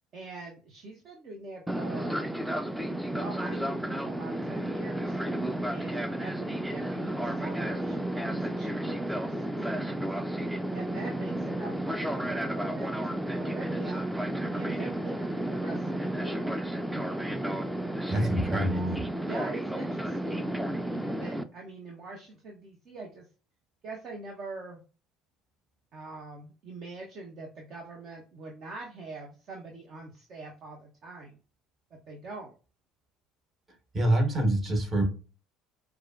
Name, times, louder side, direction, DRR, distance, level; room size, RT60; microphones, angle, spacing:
voice 1, 0.1-2.3 3.1-5.2 5.7-10.0 10.7-14.0 14.5-16.6 18.1-18.6 19.2-20.6 20.8-23.3 23.8-24.8 25.9-31.4 31.9-32.5, right 3 dB, 50° right, 1 dB, 0.7 m, -44 dB
Fixed-wing aircraft airplane, 1.7-21.4, right 1 dB, 5° right, 0.4 m, -32 dB
voice 2, 18.1-19.0 33.9-35.0, right 1 dB, 35° right, 3 dB, 1.4 m, -26 dB
4.8 x 2.3 x 2.5 m, 0.35 s
hypercardioid pair, 60°, 0 cm